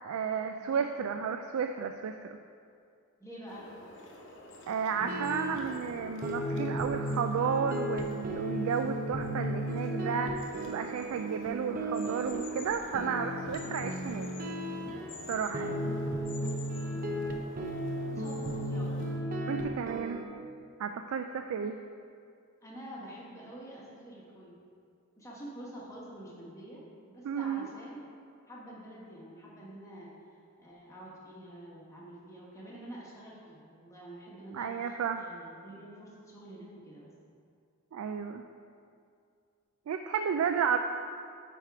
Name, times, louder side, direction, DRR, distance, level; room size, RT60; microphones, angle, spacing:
voice 1, 0.0-2.4 4.7-14.3 15.3-15.9 19.5-20.2 20.8-21.8 27.2-27.7 34.5-35.2 37.9-38.4 39.9-40.8, right 6 dB, 90° right, 6 dB, 0.3 m, -32 dB
voice 2, 3.2-3.7 15.4-16.0 16.7-17.2 18.1-19.4 22.6-24.6 25.2-28.0 28.5-30.1 30.6-37.1, right 1 dB, 15° left, -5 dB, 1.3 m, -47 dB
sound 1, 3.5-19.2, left 2 dB, 60° left, 0.9 m, -49 dB
sound 2, 5.0-20.2, equal, 45° right, 0.6 m, -35 dB
9.0 x 3.6 x 4.7 m, 2.3 s
head